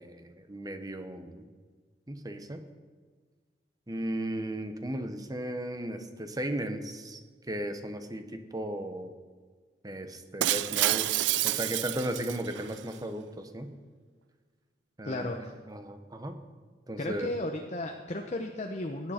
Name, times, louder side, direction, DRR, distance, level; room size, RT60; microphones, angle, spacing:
voice 1, 0.0-1.5 2.1-2.6 3.9-7.2 7.5-9.1 9.8-13.7 15.0-16.4 16.9-17.3, right 1 dB, 20° right, 7 dB, 1.0 m, -36 dB
Shatter, 10.4-12.8, right 14 dB, 85° right, 0.3 m, -29 dB
voice 2, 15.0-15.5 17.0-19.1, left 1 dB, 40° left, 3 dB, 0.8 m, -34 dB
17.0 x 10.0 x 4.4 m, 1.5 s
head